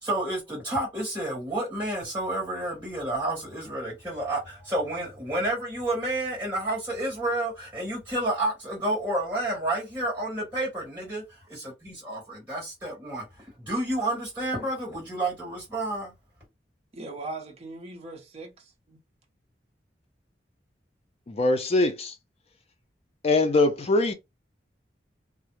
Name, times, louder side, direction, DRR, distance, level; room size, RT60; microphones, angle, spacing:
voice 1, 0.0-13.2 13.6-16.1, right 1 dB, 10° right, 1.2 m, -30 dB
voice 2, 16.9-19.0, right 2 dB, 35° right, 0.6 m, -40 dB
voice 3, 21.3-22.1 23.2-24.1, left 2 dB, 35° left, 0.4 m, -22 dB
2.4 x 2.0 x 3.0 m
head